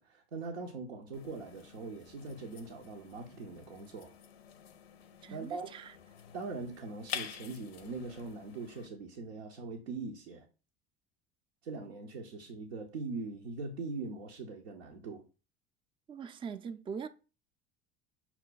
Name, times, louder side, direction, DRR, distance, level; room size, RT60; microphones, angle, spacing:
voice 1, 0.0-4.1 5.3-5.7 6.3-10.5 11.6-15.2, right 3 dB, 90° right, 0.6 m, -41 dB
sound 1, 1.1-8.9, left 8 dB, 85° left, 0.5 m, -48 dB
voice 2, 5.2-5.9 16.1-17.1, right 6 dB, 15° right, 0.3 m, -42 dB
5.7 x 2.1 x 3.9 m
hypercardioid pair, 70°, 31 cm